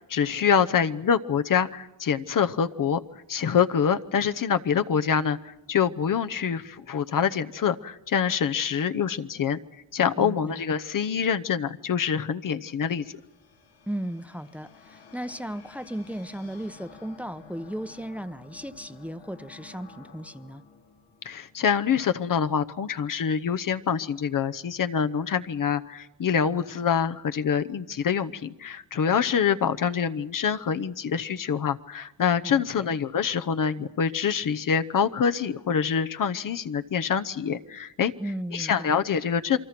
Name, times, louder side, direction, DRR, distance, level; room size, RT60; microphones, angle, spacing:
voice 1, 0.1-3.0 3.3-9.6 9.9-13.0 21.2-38.1 38.5-39.6, left 7 dB, 45° left, 10 dB, 0.9 m, -25 dB
voice 2, 10.2-10.6 13.9-20.6 32.4-32.9 38.2-39.0, right 1 dB, 5° right, 12 dB, 0.9 m, -36 dB
sound 1, 12.0-22.2, left 5 dB, 80° left, 2.6 m, -52 dB
28.0 x 23.5 x 6.0 m, 0.96 s
cardioid pair, 90°, 44 cm